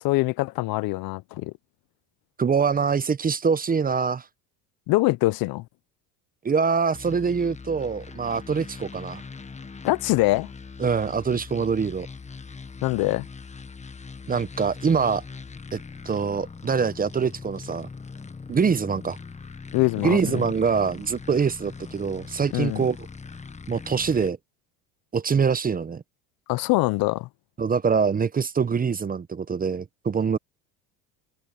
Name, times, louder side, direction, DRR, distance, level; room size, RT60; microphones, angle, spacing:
voice 1, 0.0-1.5 4.9-5.6 9.8-10.5 12.8-13.3 19.7-20.5 22.5-22.8 26.5-27.3, left 20 dB, 55° left, 0.8 m, -23 dB
voice 2, 2.4-4.3 6.4-9.2 10.8-12.1 14.3-15.2 15.7-15.8 16.0-17.9 18.5-19.2 20.0-23.1 23.7-24.4 25.1-26.0 27.6-30.4, right 6 dB, 20° right, 0.9 m, -24 dB
sound 1, 6.9-24.3, left 4 dB, 15° left, 1.4 m, -41 dB
supercardioid pair, 95°, 42 cm